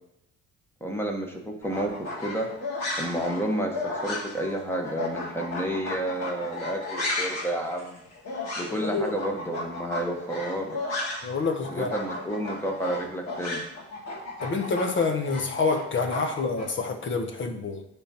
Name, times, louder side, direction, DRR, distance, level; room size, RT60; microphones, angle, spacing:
voice 1, 0.8-2.5 3.0-3.8 4.0-8.0 8.6-10.8 11.7-13.6, right 1 dB, 10° left, 1 dB, 1.2 m, -30 dB
sound 1, 1.6-11.4 11.6-16.7, left 2 dB, 55° left, 2.0 m, -34 dB
voice 2, 8.8-9.1 11.2-12.2 14.4-17.8, left 4 dB, 40° left, 5 dB, 1.0 m, -27 dB
9.8 x 3.6 x 2.9 m, 0.82 s
cardioid pair, 90°, 30 cm